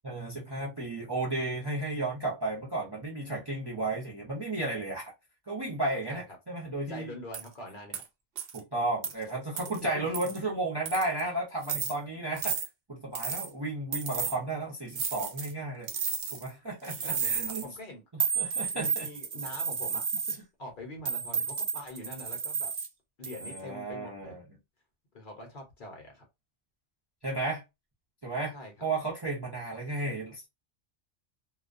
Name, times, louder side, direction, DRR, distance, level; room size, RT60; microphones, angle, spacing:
voice 1, 0.0-5.1 5.5-7.1 8.5-12.6 12.9-15.9 16.3-17.7 18.4-19.1 23.4-24.4 27.2-27.6 28.2-28.5 28.8-30.5, right 2 dB, 30° right, 0.5 m, -33 dB
voice 2, 6.9-8.0 9.7-10.4 17.0-18.4 18.7-20.1 20.6-22.7 23.2-24.4 25.1-26.3 28.5-28.9, left 1 dB, 50° left, 0.8 m, -44 dB
sound 1, 7.3-7.5 7.9-8.0 8.4-8.6 9.0-9.1 9.6-9.8 10.1-10.4 10.9-11.2 11.6-11.9 12.4-12.7 13.2-13.5 13.9-14.4 14.9-15.5 15.9-16.5 16.8-17.6 18.2-20.4 21.1-22.9 23.2-23.6, right 6 dB, 60° right, 0.7 m, -32 dB
2.3 x 2.2 x 2.4 m
omnidirectional pair, 1.2 m